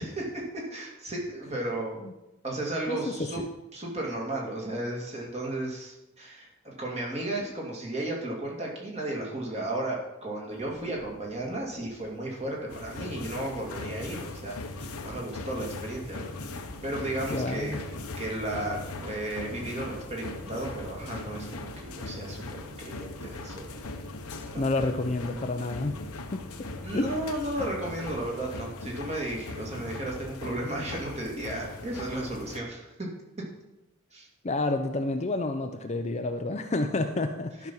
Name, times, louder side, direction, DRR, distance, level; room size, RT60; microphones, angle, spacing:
voice 1, 0.0-2.0 2.4-3.4 3.7-17.9 18.2-23.8 24.5-24.6 26.8-33.1 34.1-34.3, right 1 dB, 30° right, -2 dB, 2.2 m, -34 dB
sound 1, 10.5-28.3, right 1 dB, 55° right, 1.4 m, -53 dB
sound 2, 12.7-32.6, left 2 dB, 80° left, 1.0 m, -40 dB
voice 2, 17.3-17.8 24.6-26.0 26.3-26.4 26.9-27.1 34.4-37.7, left 2 dB, 30° left, 6 dB, 0.5 m, -29 dB
12.0 x 6.0 x 5.5 m, 0.97 s
head